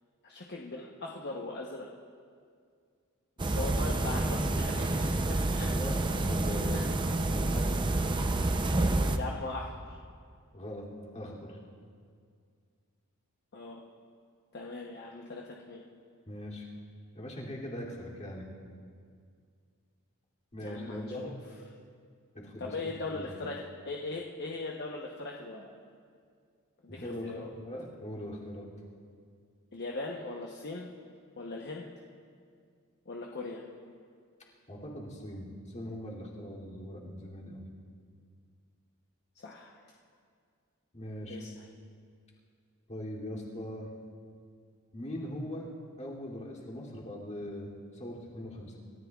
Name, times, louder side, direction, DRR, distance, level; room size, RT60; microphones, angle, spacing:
voice 1, 0.2-1.9 3.4-5.7 6.7-6.9 9.2-10.0 13.5-13.8 14.5-15.8 20.6-21.3 22.6-25.7 26.8-27.5 29.7-30.9 31.4-31.9 33.1-33.6 39.3-39.9 41.3-41.5, left 3 dB, 50° left, -1 dB, 0.9 m, -40 dB
sound 1, 3.4-9.2, right 2 dB, 20° right, 0.5 m, -28 dB
voice 2, 5.7-7.0 7.3-7.8 10.5-10.9 11.1-11.6 16.3-16.7 17.1-18.5 20.5-21.3 22.3-23.3 26.9-28.7 34.7-37.7 40.9-41.4 42.9-43.9 44.9-45.7 46.0-48.8, left 1 dB, 35° left, -5 dB, 2.7 m, -41 dB
28.0 x 14.0 x 2.4 m, 2.2 s
head